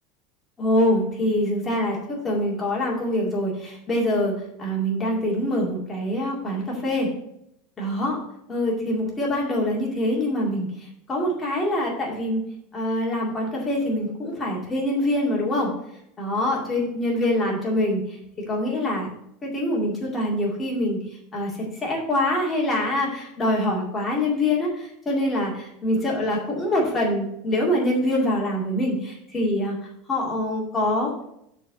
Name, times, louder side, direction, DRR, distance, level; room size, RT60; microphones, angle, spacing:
voice 1, 0.6-2.0 2.2-4.3 4.6-7.1 7.8-8.2 8.5-10.7 11.1-12.4 12.7-15.7 16.2-18.0 18.5-19.1 19.4-21.0 21.3-21.5 21.8-29.8 30.1-31.2, left 1 dB, 15° left, -3 dB, 2.2 m, -24 dB
6.8 x 4.4 x 6.1 m, 0.76 s
supercardioid pair, 160°, 0 cm